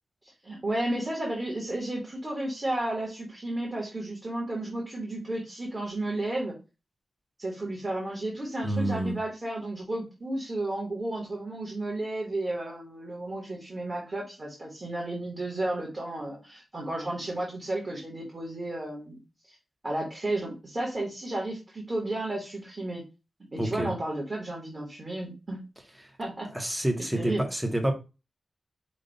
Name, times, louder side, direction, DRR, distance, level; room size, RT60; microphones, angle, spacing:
voice 1, 0.4-6.5 7.4-19.2 19.8-23.0 23.5-25.6 26.2-26.5 27.0-27.4, right 1 dB, 30° right, 1.3 m, -33 dB
voice 2, 8.6-9.2 23.6-23.9 26.5-27.9, right 1 dB, 10° right, 0.9 m, -28 dB
5.2 x 2.3 x 3.9 m
wide cardioid pair, 175°, 0 cm